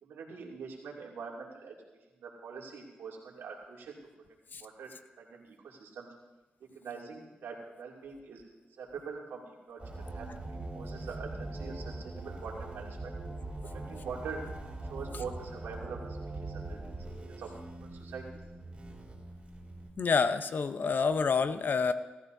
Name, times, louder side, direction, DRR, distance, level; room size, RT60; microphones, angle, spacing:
voice 1, 0.0-1.8 2.1-4.0 4.5-6.1 6.6-8.5 8.8-13.1 13.7-14.5 14.8-17.0 17.2-18.2, right 5 dB, 85° right, -2 dB, 2.7 m, -44 dB
sound 1, 9.8-19.9, right 2 dB, 30° right, 4.2 m, -42 dB
voice 2, 20.0-21.9, left 5 dB, 55° left, 11 dB, 0.8 m, -28 dB
18.0 x 14.0 x 2.7 m, 1.1 s
cardioid pair, 65°, 4 cm